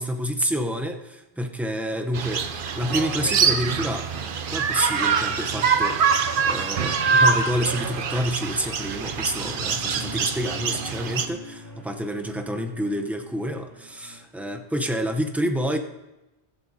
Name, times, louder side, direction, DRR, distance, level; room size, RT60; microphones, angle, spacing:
voice 1, 0.0-4.1 4.5-6.0 6.4-15.8, equal, ahead, 4 dB, 0.5 m, -28 dB
sound 1, 2.1-11.3, right 6 dB, 55° right, 0.8 m, -24 dB
sound 2, 8.4-15.0, left 1 dB, 15° left, 3.6 m, -43 dB
20.5 x 7.5 x 2.8 m, 1.0 s
omnidirectional pair, 1.2 m